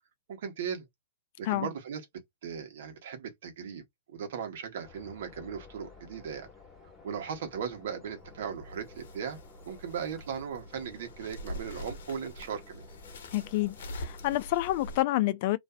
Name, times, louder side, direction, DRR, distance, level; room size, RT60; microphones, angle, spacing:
voice 1, 0.3-0.9 1.4-2.0 2.4-3.8 4.1-6.5 7.0-9.4 9.6-12.9, right 7 dB, 65° right, 1.0 m, -37 dB
sound 1, 4.8-14.3, left 5 dB, 10° left, 1.1 m, -54 dB
sound 2, 8.2-15.0, equal, 70° left, 1.0 m, -44 dB
voice 2, 13.3-15.6, left 16 dB, 50° left, 0.4 m, -28 dB
2.5 x 2.4 x 2.2 m
hypercardioid pair, 130°, 0 cm